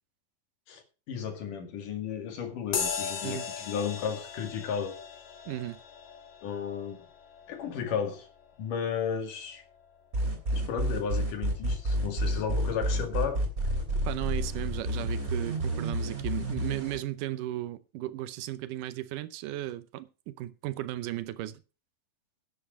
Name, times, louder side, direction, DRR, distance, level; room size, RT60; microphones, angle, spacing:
voice 1, 0.7-5.0 6.4-7.0 7.5-8.3 8.6-9.6 10.5-13.4, left 7 dB, 90° left, 3.8 m, -34 dB
sound 1, 2.7-10.6, left 6 dB, 65° left, 3.3 m, -39 dB
voice 2, 5.5-5.8 14.1-21.6, right 15 dB, 85° right, 2.4 m, -35 dB
sound 2, 10.1-17.0, right 1 dB, 25° right, 3.4 m, -29 dB
11.5 x 8.5 x 5.5 m
omnidirectional pair, 3.6 m